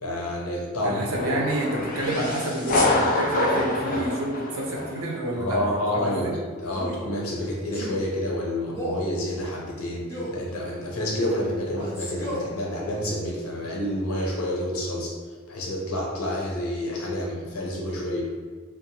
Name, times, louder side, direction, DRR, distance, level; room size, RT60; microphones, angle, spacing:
voice 1, 0.0-1.3 5.4-18.2, left 1 dB, 85° left, -2 dB, 0.7 m, -29 dB
voice 2, 0.8-5.6 5.9-6.3, right 1 dB, 75° right, -3 dB, 0.6 m, -28 dB
sound 1, 1.1-5.1, left 2 dB, 40° left, 0.4 m, -26 dB
Male speech man speaking, 6.7-7.0 7.7-8.0 8.7-9.1 10.1-10.4 11.7-12.5, left 1 dB, 10° left, 0.8 m, -33 dB
2.8 x 2.0 x 2.8 m, 1.5 s
head